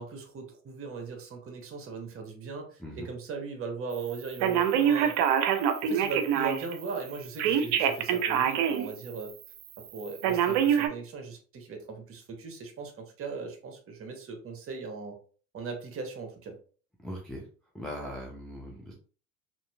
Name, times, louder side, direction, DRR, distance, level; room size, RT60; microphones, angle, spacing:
voice 1, 0.0-5.2 5.8-9.3 9.9-15.2 15.5-16.6, right 4 dB, 30° right, 4 dB, 0.9 m, -38 dB
Telephone, 4.4-6.7 7.4-8.9 9.3-9.4 10.2-10.9, right 8 dB, 55° right, 0.6 m, -25 dB
voice 2, 17.0-17.4 17.7-18.9, equal, ahead, -3 dB, 0.3 m, -39 dB
2.8 x 2.6 x 2.2 m, 0.40 s
hypercardioid pair, 80°, 43 cm